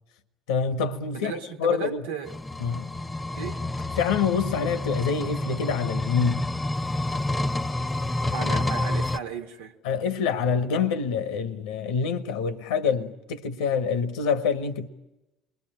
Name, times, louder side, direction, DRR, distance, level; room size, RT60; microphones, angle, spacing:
voice 1, 0.5-1.3 1.6-2.1 2.6-2.9 4.0-6.5 9.8-14.9, left 6 dB, 80° left, 1.0 m, -26 dB
voice 2, 1.1-2.3 3.3-3.6 8.3-9.7, right 7 dB, 80° right, 1.5 m, -35 dB
sound 1, 2.3-9.2, left 2 dB, 15° left, 0.9 m, -29 dB
28.5 x 22.5 x 8.9 m
hypercardioid pair, 60°, 0 cm